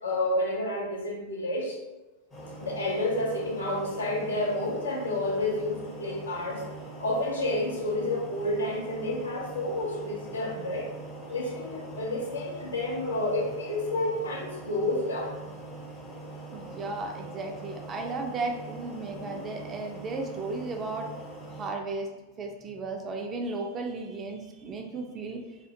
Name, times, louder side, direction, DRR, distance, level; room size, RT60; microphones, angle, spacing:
voice 1, 0.0-1.8 2.6-6.7 7.0-10.9 11.3-15.5, left 1 dB, 70° left, -2 dB, 0.6 m, -30 dB
sound 1, 2.3-21.7, right 2 dB, 20° left, 0.6 m, -43 dB
voice 2, 16.5-21.1 21.6-22.1 22.4-25.6, right 3 dB, 25° right, 2 dB, 0.4 m, -35 dB
2.4 x 2.1 x 2.7 m, 1.1 s
figure-of-eight pair, 90°, 0 cm